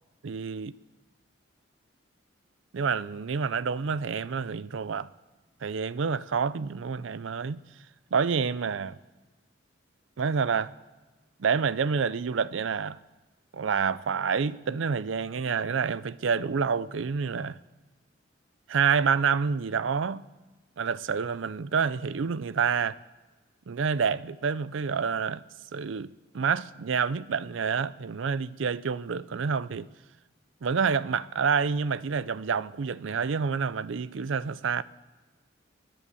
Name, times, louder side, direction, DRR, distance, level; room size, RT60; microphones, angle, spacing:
voice 1, 0.2-0.7 2.7-5.1 5.6-7.6 8.1-9.0 10.2-10.7 11.4-13.0 13.5-17.6 18.7-20.3 20.8-23.0 23.7-25.4 25.7-29.9 30.6-34.8, right 6 dB, 70° right, 0.5 m, -28 dB
20.5 x 10.0 x 7.0 m
head